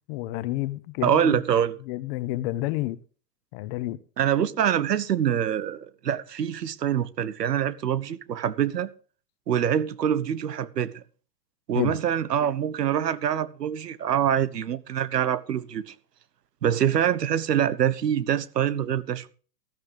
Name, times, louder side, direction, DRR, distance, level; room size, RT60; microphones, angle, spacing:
voice 1, 0.1-1.4 1.9-3.0 3.5-4.0 11.7-11.9, left 17 dB, 40° left, 1.1 m, -29 dB
voice 2, 1.0-1.7 4.2-8.9 9.5-11.0 11.7-15.9 16.6-19.3, right 9 dB, 80° right, 1.3 m, -25 dB
14.0 x 14.0 x 3.5 m
hypercardioid pair, 125°, 47 cm